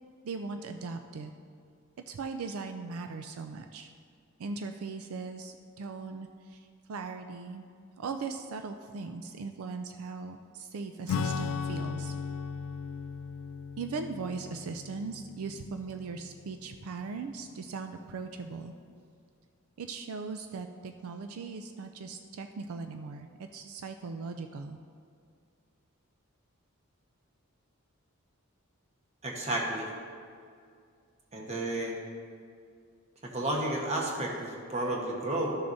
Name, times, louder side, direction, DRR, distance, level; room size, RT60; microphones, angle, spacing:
voice 1, 0.2-1.3 2.1-3.9 4.4-6.6 6.9-7.6 8.0-12.1 13.8-18.7 19.8-24.8, right 4 dB, 80° right, 7 dB, 0.4 m, -39 dB
Acoustic guitar / Strum, 11.1-17.0, left 6 dB, 85° left, 0.3 m, -37 dB
voice 2, 29.2-29.9 31.3-31.9 33.2-35.5, right 1 dB, 30° right, -1 dB, 1.1 m, -32 dB
13.0 x 6.8 x 2.7 m, 2.2 s
head